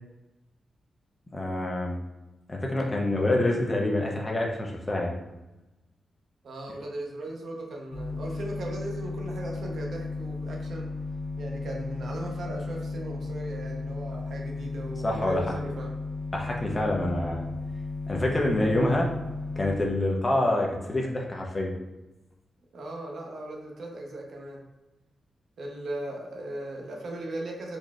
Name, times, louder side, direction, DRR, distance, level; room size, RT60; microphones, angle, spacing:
voice 1, 1.3-2.0 2.5-5.2 15.0-15.5 16.3-17.5 18.1-19.1 19.6-21.7, left 1 dB, 20° left, 0 dB, 0.5 m, -26 dB
voice 2, 6.4-10.9 11.4-15.9 22.7-24.6 25.6-27.8, right 1 dB, 60° right, 0 dB, 0.7 m, -37 dB
sound 1, 7.9-19.8, left 3 dB, 85° left, 0.5 m, -35 dB
3.9 x 3.1 x 2.3 m, 1.0 s
wide cardioid pair, 155°, 0 cm